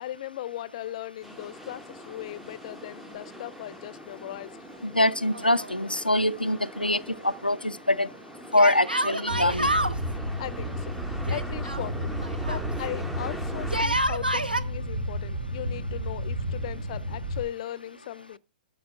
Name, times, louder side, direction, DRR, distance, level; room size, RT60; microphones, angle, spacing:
voice 1, 0.0-4.5 10.4-10.9 11.3-12.1 12.4-18.4, left 13 dB, 40° left, 0.6 m, -38 dB
sound 1, 1.2-13.8, equal, 5° right, 0.7 m, -42 dB
voice 2, 4.8-8.1 8.5-9.7, left 1 dB, 90° left, 0.5 m, -24 dB
Yell, 5.3-6.2 6.4-6.5 8.6-10.0 11.3-12.7 13.6-14.6, right 1 dB, 85° right, 0.9 m, -28 dB
sound 2, 9.3-17.4, equal, 55° right, 2.0 m, -32 dB
12.5 x 5.7 x 5.4 m
figure-of-eight pair, 115°, 5 cm